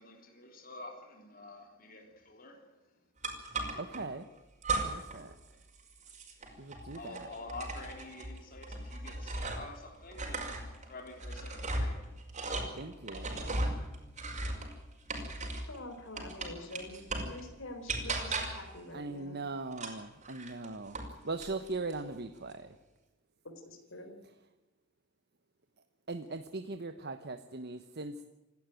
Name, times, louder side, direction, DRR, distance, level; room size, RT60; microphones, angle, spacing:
voice 1, 0.0-2.7 6.9-12.2, left 2 dB, 45° left, 3.3 m, -48 dB
sound 1, 3.2-4.0 4.6-5.2 5.5-9.8 10.1-15.8 16.2-17.4 17.9-18.7 19.7-21.1 21.4-22.0, right 2 dB, 35° right, 5.5 m, -37 dB
voice 2, 3.8-4.3 4.8-5.6 6.6-7.3 12.8-13.7 18.9-22.8 26.1-28.2, right 3 dB, 55° right, 1.2 m, -40 dB
voice 3, 15.7-19.4 23.4-24.2, left 1 dB, 75° left, 4.1 m, -46 dB
28.0 x 12.5 x 9.3 m
head